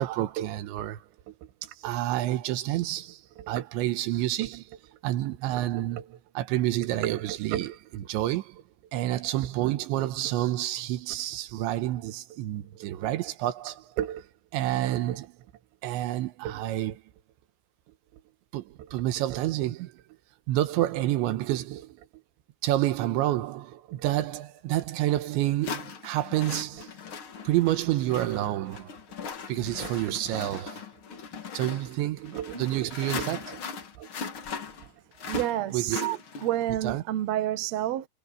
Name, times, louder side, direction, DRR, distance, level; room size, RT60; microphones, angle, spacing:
voice 1, 0.0-1.3 1.6-8.6 8.9-14.3 14.5-15.4 15.8-17.0 18.5-20.0 20.5-22.1 22.6-26.9 27.5-28.9 29.5-30.9 31.5-34.1 35.3-36.6 36.8-37.0, right 14 dB, 90° right, 3.5 m, -29 dB
sound 1, 24.7-24.8 25.6-36.7, left 5 dB, 65° left, 1.3 m, -39 dB
voice 2, 35.2-36.0 36.4-38.1, right 12 dB, 75° right, 1.6 m, -29 dB
omnidirectional pair, 5.1 m